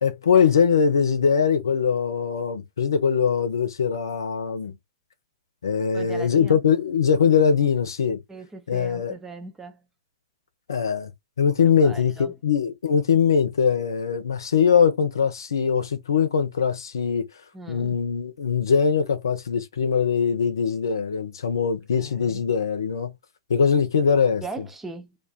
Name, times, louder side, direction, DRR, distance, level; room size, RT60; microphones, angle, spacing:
voice 1, 0.0-4.8 5.6-8.2 8.7-9.2 10.7-11.1 11.4-23.2 23.5-24.7, left 6 dB, 70° left, 0.7 m, -22 dB
voice 2, 5.9-6.6 8.3-9.8 11.6-12.3 17.5-18.0 22.0-22.4 24.4-25.2, right 4 dB, 10° right, 0.6 m, -39 dB
2.5 x 2.4 x 4.0 m
figure-of-eight pair, 105°, 2 cm